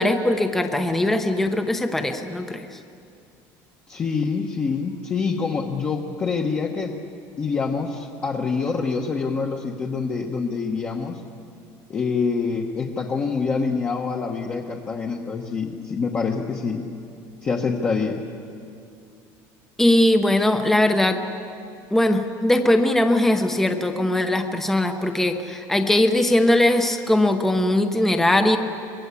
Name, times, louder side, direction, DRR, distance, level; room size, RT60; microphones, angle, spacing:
voice 1, 0.0-2.7 19.8-21.2 21.9-28.6, left 1 dB, 5° left, 6 dB, 0.9 m, -20 dB
voice 2, 3.9-7.0 7.4-11.2 11.9-16.9 17.4-18.2, left 5 dB, 25° left, 0 dB, 1.2 m, -26 dB
24.5 x 21.0 x 8.4 m, 2.5 s
cardioid pair, 175°, 8 cm